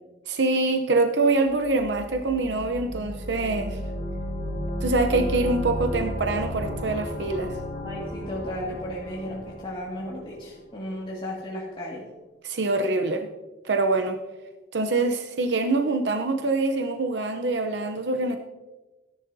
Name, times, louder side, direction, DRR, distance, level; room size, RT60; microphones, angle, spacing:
voice 1, 0.3-3.8 4.8-7.5 12.4-13.3 13.6-14.2 14.7-18.4, right 3 dB, 90° right, 6 dB, 0.8 m, -24 dB
sound 1, 1.6-10.4, equal, 50° left, 3.0 m, -33 dB
voice 2, 7.8-12.0, equal, 30° left, -5 dB, 2.2 m, -34 dB
17.0 x 10.5 x 2.8 m, 1.2 s
head